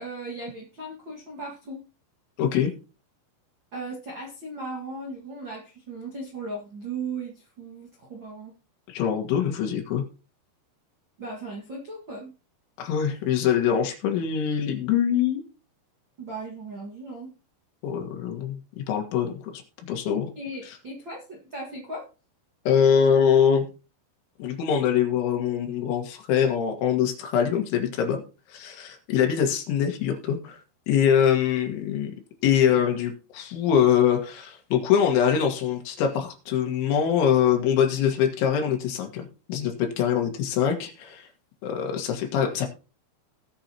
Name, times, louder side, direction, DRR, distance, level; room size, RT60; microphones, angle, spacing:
voice 1, 0.0-1.9 3.7-8.5 11.2-12.3 16.2-17.3 20.3-22.1, right 2 dB, 80° right, -1 dB, 1.0 m, -37 dB
voice 2, 2.4-2.7 8.9-10.0 12.8-15.4 17.8-18.6 18.9-19.6 19.9-20.3 22.7-23.7 24.4-28.2 28.5-30.6 30.9-32.1 32.4-41.3 41.6-42.7, left 8 dB, 80° left, 4 dB, 4.0 m, -23 dB
19.0 x 6.9 x 2.9 m, 0.32 s
omnidirectional pair, 5.5 m